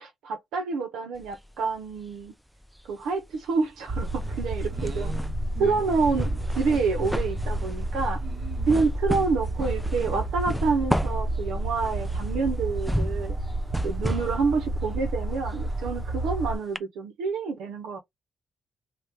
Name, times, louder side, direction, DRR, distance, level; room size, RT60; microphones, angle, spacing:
voice 1, 0.0-2.3 2.8-5.1 5.6-8.2 8.7-13.3 13.8-18.0, right 4 dB, 85° right, 0.9 m, -28 dB
sound 1, 1.2-2.3 2.6-16.4 16.8-16.9, equal, ahead, 0.5 m, -34 dB
sound 2, 3.9-16.6, right 1 dB, 25° right, 1.2 m, -30 dB
voice 2, 4.7-5.8 8.2-8.7 14.0-14.5, right 5 dB, 50° right, 1.1 m, -42 dB
2.8 x 2.4 x 3.6 m
cardioid pair, 90°, 0 cm